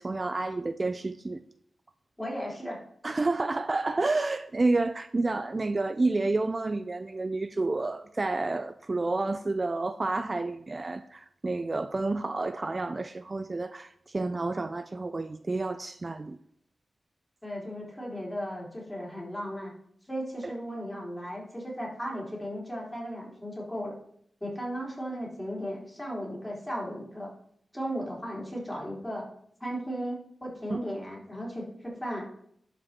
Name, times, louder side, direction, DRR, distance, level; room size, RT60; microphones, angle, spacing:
voice 1, 0.0-1.4 3.0-16.4 20.4-20.5 30.7-30.8, right 3 dB, 35° right, 0.4 m, -30 dB
voice 2, 2.2-2.8 17.4-19.7 20.1-24.0 24.4-27.3 27.7-29.3 29.6-32.3, equal, 10° left, 3.8 m, -36 dB
12.0 x 5.2 x 4.4 m
wide cardioid pair, 85°, 0 cm